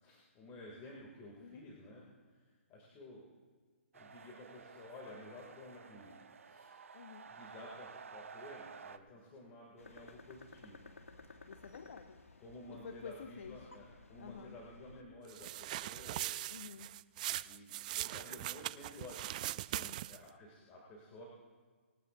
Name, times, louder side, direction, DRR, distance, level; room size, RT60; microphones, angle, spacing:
voice 1, 0.0-2.1 2.7-3.3 3.9-6.2 6.4-6.7 7.3-10.8 12.4-16.5 17.4-19.3 20.1-21.3, left 1 dB, 25° left, -3 dB, 2.4 m, -53 dB
sound 1, 3.9-9.0, right 6 dB, 75° right, 0.9 m, -53 dB
voice 2, 6.9-7.3 11.3-12.2 12.7-13.7 14.2-14.6 16.5-17.0 19.6-20.1, left 6 dB, 65° left, 8 dB, 0.8 m, -51 dB
sound 2, 9.8-15.0, left 3 dB, 90° left, 1.4 m, -56 dB
sound 3, 15.3-20.3, right 15 dB, 35° right, 0.3 m, -41 dB
21.0 x 13.0 x 2.6 m, 1.5 s
hypercardioid pair, 140°, 7 cm